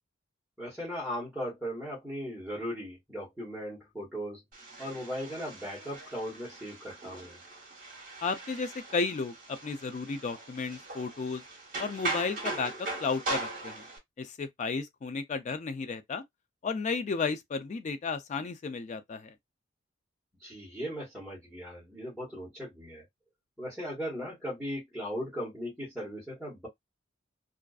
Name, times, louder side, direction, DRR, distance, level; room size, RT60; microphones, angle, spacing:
voice 1, 0.6-4.4 4.8-7.4 20.4-23.0 23.6-26.7, equal, ahead, 1.1 m, -38 dB
sound 1, 4.5-14.0, right 2 dB, 45° right, 1.1 m, -39 dB
voice 2, 8.2-11.4 11.8-13.8 14.2-16.2 16.6-19.3, left 4 dB, 40° left, 0.3 m, -33 dB
2.4 x 2.3 x 2.3 m
head